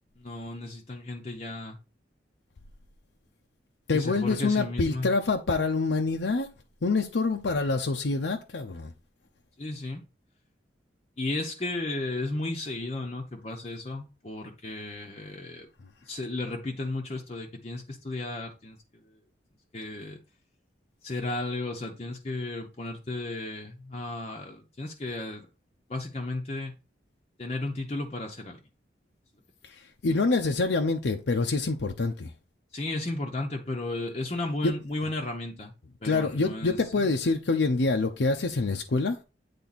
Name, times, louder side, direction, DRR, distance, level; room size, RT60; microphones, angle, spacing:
voice 1, 0.2-1.8 3.9-5.1 9.6-10.0 11.2-15.7 16.1-19.1 19.7-20.2 21.0-25.5 25.9-26.7 27.4-28.6 32.7-35.7 36.0-37.1, left 2 dB, 35° left, 0.7 m, -34 dB
voice 2, 3.9-6.5 6.8-8.9 29.6-32.3 34.6-34.7 36.0-39.2, left 3 dB, 85° left, 0.6 m, -26 dB
8.6 x 3.4 x 4.1 m
head